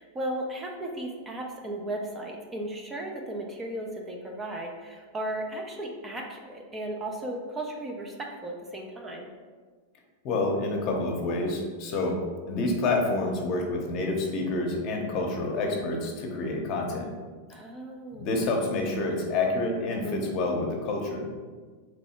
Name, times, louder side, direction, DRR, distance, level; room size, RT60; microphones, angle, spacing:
voice 1, 0.0-9.3 15.7-15.9 17.5-18.3 20.0-20.4, right 1 dB, 15° right, 1 dB, 0.5 m, -35 dB
voice 2, 10.2-12.2 12.5-17.1 18.2-21.3, left 2 dB, 45° left, 1 dB, 0.8 m, -28 dB
3.1 x 2.6 x 4.3 m, 1.5 s
supercardioid pair, 130°, 0 cm